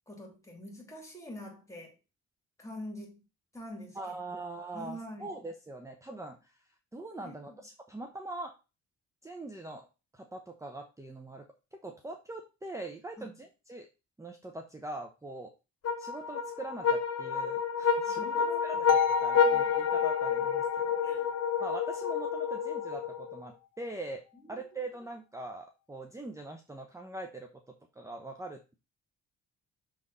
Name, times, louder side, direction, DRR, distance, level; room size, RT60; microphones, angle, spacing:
voice 1, 0.1-2.0 2.6-3.2 3.5-4.4 4.7-5.3 7.2-7.6 13.2-13.4 18.1-18.8 19.3-19.7 21.0-21.3 24.3-24.7, equal, 10° left, 2.9 m, -46 dB
voice 2, 3.9-8.5 9.2-9.9 10.1-11.5 11.8-13.9 14.2-15.5 16.0-21.3 21.6-24.2 24.5-28.8, right 2 dB, 10° right, 0.8 m, -43 dB
sound 1, 15.8-23.4, left 6 dB, 55° left, 2.0 m, -29 dB
sound 2, 18.9-22.9, left 11 dB, 85° left, 0.6 m, -33 dB
6.5 x 3.7 x 4.1 m
cardioid pair, 90°, 30 cm